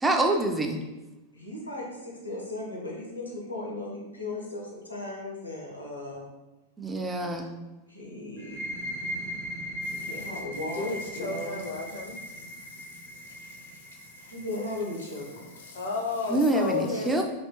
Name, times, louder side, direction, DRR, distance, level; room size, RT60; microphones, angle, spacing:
voice 1, 0.0-0.8 6.8-7.6 16.3-17.2, right 2 dB, 10° right, 3 dB, 0.3 m, -26 dB
voice 2, 1.3-6.3 7.9-8.7 9.9-11.6 14.3-15.5, left 2 dB, 85° left, -3 dB, 0.9 m, -37 dB
sound 1, 8.4-15.8, equal, 55° right, 0.7 m, -39 dB
voice 3, 9.8-10.4 10.7-14.5 15.3-17.2, left 3 dB, 65° left, 1 dB, 0.6 m, -35 dB
3.2 x 2.8 x 2.8 m, 1.1 s
figure-of-eight pair, 90°, 0 cm